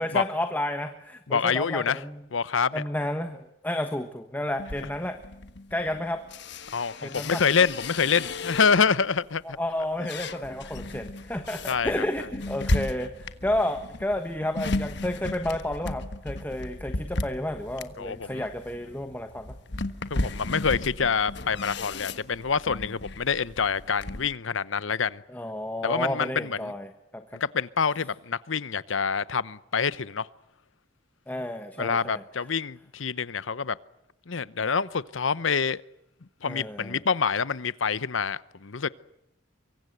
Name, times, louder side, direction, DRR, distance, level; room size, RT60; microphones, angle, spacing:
voice 1, 0.0-2.2 2.7-5.2 5.7-6.2 7.0-7.4 9.6-19.5 20.2-20.3 25.3-27.2 31.3-32.2 36.4-37.0, left 1 dB, 10° left, 1.3 m, -31 dB
voice 2, 1.3-2.0 2.3-2.8 6.7-9.6 11.7-12.0 18.0-18.4 20.1-25.2 25.8-26.7 27.3-30.3 31.8-33.8 34.3-35.8 36.4-38.9, left 6 dB, 75° left, 0.8 m, -26 dB
sound 1, 4.6-9.1 9.6-24.3, left 2 dB, 60° left, 1.4 m, -35 dB
24.0 x 24.0 x 7.9 m
head